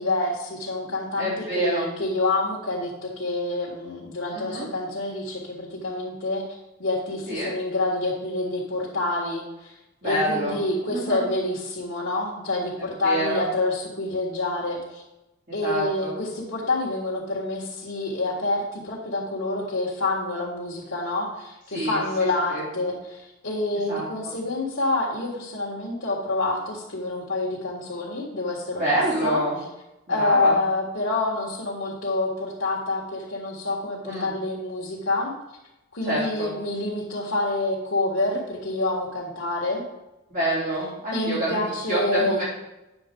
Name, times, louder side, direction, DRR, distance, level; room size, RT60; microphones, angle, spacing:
voice 1, 0.0-6.5 6.8-9.7 10.0-15.0 15.5-29.4 30.1-35.3 35.9-39.8 41.1-42.4, left 2 dB, 60° left, -6 dB, 1.8 m, -27 dB
voice 2, 1.2-1.9 4.3-4.7 7.3-7.5 10.0-11.2 12.8-13.4 15.5-16.1 21.7-22.0 22.5-22.6 23.9-24.0 28.8-29.6 30.1-30.6 34.0-34.3 36.0-36.5 40.3-41.6 41.9-42.4, right 1 dB, 40° right, -9 dB, 3.2 m, -27 dB
9.7 x 7.2 x 3.8 m, 0.96 s
head